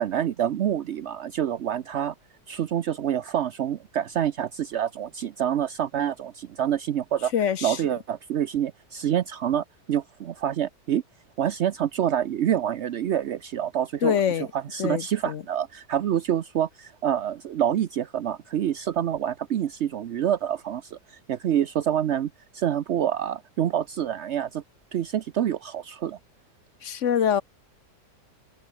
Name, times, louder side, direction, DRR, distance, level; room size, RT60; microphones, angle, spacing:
voice 1, 0.0-2.1 2.5-7.3 7.6-11.0 11.4-24.6 24.9-26.2, right 10 dB, 65° right, 0.7 m, -27 dB
voice 2, 7.3-7.8 14.0-14.5 14.8-15.4 26.8-27.4, left 8 dB, 55° left, 0.9 m, -24 dB
omnidirectional pair, 2.0 m